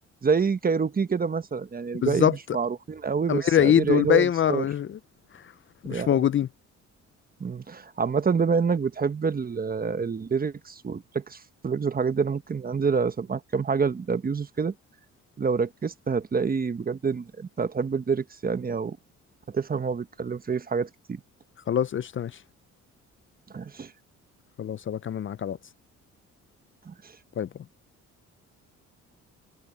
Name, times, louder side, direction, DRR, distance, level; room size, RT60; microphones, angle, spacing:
voice 1, 0.2-4.6 5.9-6.3 7.4-14.7 15.4-19.0 19.5-21.2 23.5-23.9 26.9-27.0, right 5 dB, 30° right, 1.1 m, -27 dB
voice 2, 2.0-2.4 3.3-5.0 5.8-6.5 21.7-22.3 24.6-25.6 27.4-27.5, left 10 dB, 40° left, 0.5 m, -23 dB
cardioid pair, 90°, 30 cm